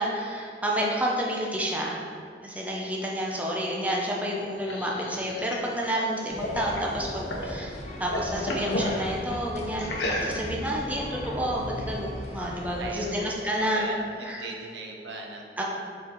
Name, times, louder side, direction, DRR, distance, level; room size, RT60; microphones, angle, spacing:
voice 1, 0.0-2.0 2.4-7.7 8.0-13.9 14.3-14.4 15.6-15.7, equal, 10° right, -3 dB, 0.7 m, -29 dB
sound 1, 4.2-7.6 7.9-8.9 9.8-10.7, left 1 dB, 85° left, 1.0 m, -33 dB
sound 2, 6.3-12.9, equal, 40° left, 0.7 m, -38 dB
voice 2, 12.8-15.5, right 2 dB, 80° right, 1 dB, 0.9 m, -39 dB
6.7 x 4.4 x 4.0 m, 2.3 s
head